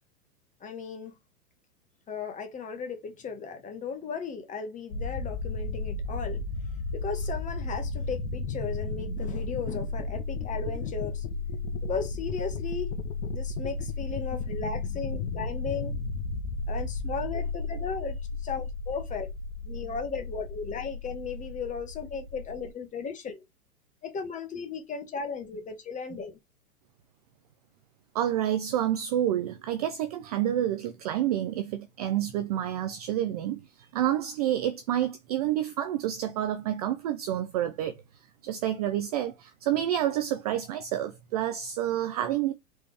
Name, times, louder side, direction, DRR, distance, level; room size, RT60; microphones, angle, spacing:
voice 1, 0.6-1.2 2.1-6.4 6.9-11.2 11.8-13.0 13.3-15.9 16.7-18.2 18.4-19.3 19.6-23.4 24.0-26.4, left 5 dB, 15° left, 1.2 m, -36 dB
sound 1, 4.9-22.7, left 3 dB, 65° left, 1.1 m, -34 dB
voice 2, 28.1-33.6 33.9-37.9 38.4-42.5, right 11 dB, 30° right, 0.4 m, -28 dB
4.3 x 3.3 x 3.2 m
hypercardioid pair, 125°, 45 cm